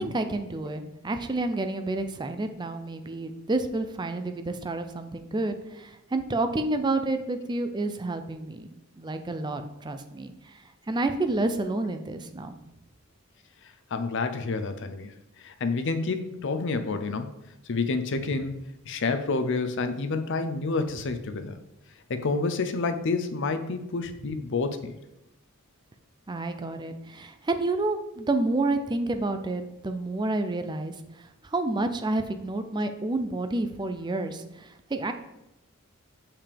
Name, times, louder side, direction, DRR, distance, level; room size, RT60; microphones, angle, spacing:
voice 1, 0.0-8.7 9.0-10.3 10.9-12.5 26.3-30.9 31.5-35.1, right 2 dB, 20° right, 8 dB, 0.4 m, -29 dB
voice 2, 13.9-15.1 15.4-17.3 17.7-18.5 18.8-21.6 22.1-24.9, left 3 dB, 55° left, 9 dB, 0.5 m, -29 dB
6.8 x 5.7 x 3.4 m, 0.92 s
head